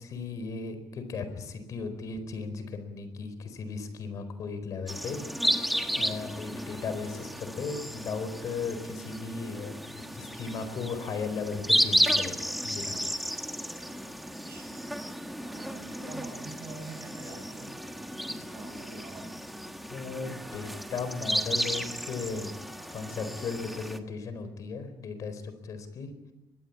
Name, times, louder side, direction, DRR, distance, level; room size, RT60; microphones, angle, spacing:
voice 1, 0.0-12.4 12.6-13.0 19.9-22.5 22.9-26.1, left 4 dB, 50° left, 10 dB, 4.3 m, -36 dB
sound 1, 4.9-24.0, equal, ahead, 1.5 m, -33 dB
voice 2, 14.2-14.9 15.5-17.7 18.2-19.4, right 3 dB, 35° right, 6 dB, 6.8 m, -46 dB
23.5 x 20.0 x 8.5 m, 0.96 s
cardioid pair, 165°, 8 cm